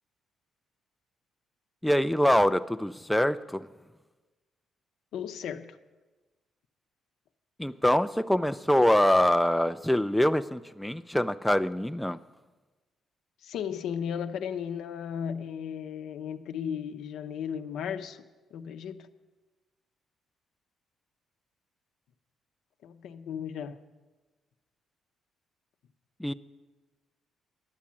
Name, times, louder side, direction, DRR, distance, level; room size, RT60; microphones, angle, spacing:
voice 1, 1.8-3.7 7.6-12.2 26.2-26.3, left 1 dB, 5° left, 0.3 m, -24 dB
voice 2, 5.1-5.8 13.4-18.2 18.5-19.1 22.8-23.8, left 8 dB, 80° left, 0.6 m, -35 dB
11.5 x 7.3 x 8.5 m
cardioid pair, 90°, 0 cm